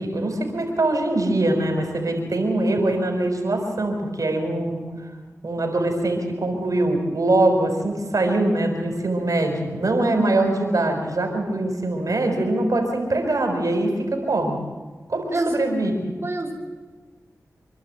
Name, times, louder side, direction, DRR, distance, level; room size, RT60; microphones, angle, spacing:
voice 1, 0.0-4.8 5.4-14.6 15.1-16.1, right 2 dB, 65° right, 4 dB, 5.6 m, -23 dB
voice 2, 16.2-16.5, right 2 dB, 40° right, -2 dB, 4.3 m, -27 dB
27.5 x 12.0 x 9.3 m, 1.4 s
cardioid pair, 50°, 6 cm